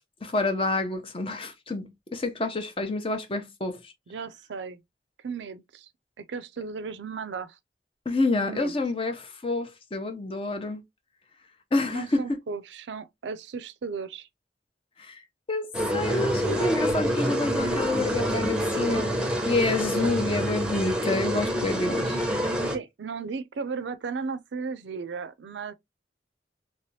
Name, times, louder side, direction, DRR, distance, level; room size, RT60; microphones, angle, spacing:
voice 1, 0.2-3.9 8.1-10.8 11.7-12.4 15.0-15.2 15.5-19.1 19.5-22.2, left 2 dB, 30° left, 0.7 m, -28 dB
voice 2, 4.1-4.8 5.2-5.9 6.2-7.6 8.5-8.7 11.8-14.3 22.7-25.7, right 5 dB, 85° right, 0.5 m, -35 dB
sound 1, 15.7-22.8, equal, 5° right, 0.7 m, -27 dB
3.3 x 2.9 x 2.7 m
head